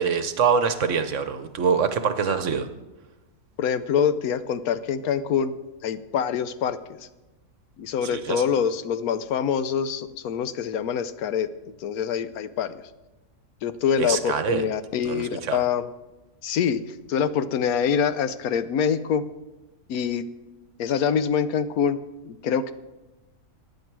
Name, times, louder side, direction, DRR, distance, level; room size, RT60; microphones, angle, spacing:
voice 1, 0.0-2.7 8.0-8.4 14.0-14.7 15.0-15.6, right 6 dB, 60° right, 10 dB, 1.1 m, -24 dB
voice 2, 3.6-5.5 5.8-6.8 7.8-11.5 11.8-12.7 13.6-15.9 16.4-16.8 17.1-19.2 19.9-20.3 20.8-22.0 22.2-22.7, left 7 dB, 75° left, 13 dB, 1.1 m, -25 dB
14.5 x 9.6 x 4.6 m, 1.1 s
omnidirectional pair, 1.6 m